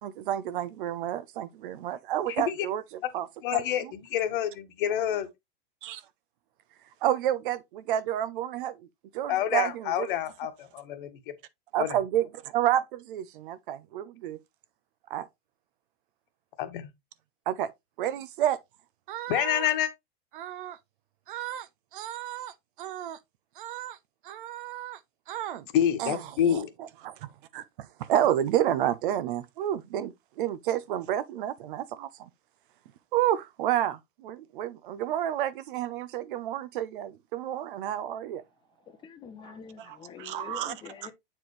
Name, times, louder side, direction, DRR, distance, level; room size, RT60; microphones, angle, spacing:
voice 1, 0.0-3.3 3.5-3.6 5.8-6.0 7.0-8.8 9.1-10.1 11.7-14.4 15.1-15.3 17.5-17.7 18.0-18.6 19.1-19.7 20.3-20.8 21.3-21.7 21.9-22.5 22.8-23.2 23.6-24.0 24.2-25.0 25.3-25.7 26.0-26.2 26.5-27.1 27.5-27.6 28.0-32.3 33.1-38.4 39.8-40.7, right 11 dB, 60° right, 0.7 m, -30 dB
voice 2, 2.3-2.7 3.0-3.1 3.4-5.3 9.3-11.2 11.8-12.0 16.6-16.9 19.3-19.9 25.7-26.7, left 10 dB, 55° left, 1.4 m, -28 dB
voice 3, 38.9-41.1, left 7 dB, 15° left, 0.8 m, -45 dB
7.8 x 4.5 x 3.2 m
supercardioid pair, 150°, 30 cm